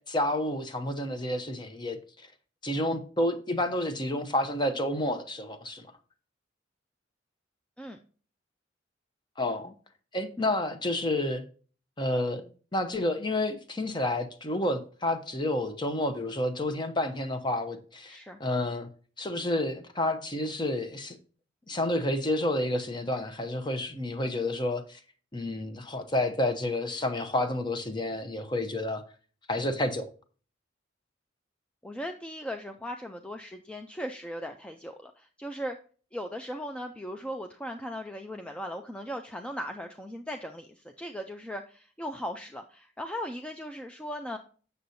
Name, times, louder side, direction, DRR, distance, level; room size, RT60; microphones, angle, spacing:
voice 1, 0.0-2.0 2.6-5.8 9.4-9.7 10.1-11.4 12.0-18.9 19.2-21.2 21.7-25.0 25.3-29.0 29.5-30.1, left 1 dB, 25° left, 0.8 m, -30 dB
voice 2, 18.1-18.4 31.8-35.8 36.1-44.4, equal, 5° left, 0.4 m, -38 dB
7.9 x 6.8 x 2.6 m
head